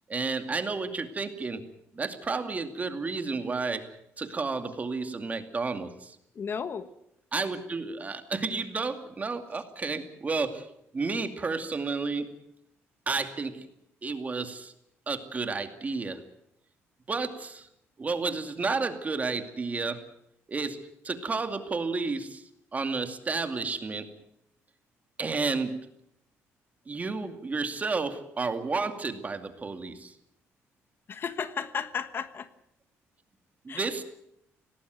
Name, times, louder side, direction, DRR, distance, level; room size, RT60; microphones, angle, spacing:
voice 1, 0.1-1.7 1.9-3.9 4.2-6.2 7.3-10.7 10.9-12.4 13.1-13.7 14.0-14.7 15.1-16.3 17.1-17.7 18.0-20.0 20.5-24.1 25.2-25.8 26.9-30.2 33.6-34.0, right 4 dB, 30° right, 8 dB, 2.3 m, -31 dB
voice 2, 6.3-6.9 31.1-32.5 33.7-33.9, left 6 dB, 45° left, 12 dB, 1.3 m, -34 dB
18.0 x 17.5 x 9.2 m, 0.78 s
cardioid pair, 95°, 5 cm